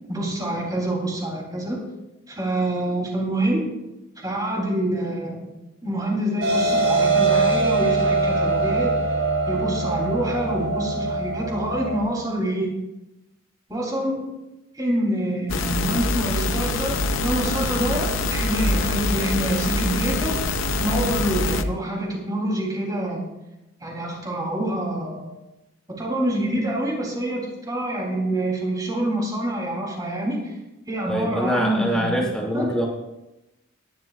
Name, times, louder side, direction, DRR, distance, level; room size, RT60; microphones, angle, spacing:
voice 1, 0.1-1.8 2.3-3.7 4.2-5.5 5.8-8.9 9.5-12.7 13.7-14.3 14.7-20.4 20.8-23.3 23.8-25.3 25.9-30.5 30.9-32.7, right 1 dB, 20° right, -1 dB, 3.5 m, -26 dB
sound 1, 6.4-12.0, right 3 dB, 75° right, 3.5 m, -22 dB
sound 2, 15.5-21.6, left 2 dB, 65° left, 0.7 m, -24 dB
voice 2, 31.1-32.9, equal, 5° left, -2 dB, 2.7 m, -24 dB
18.0 x 12.0 x 2.5 m, 0.97 s
head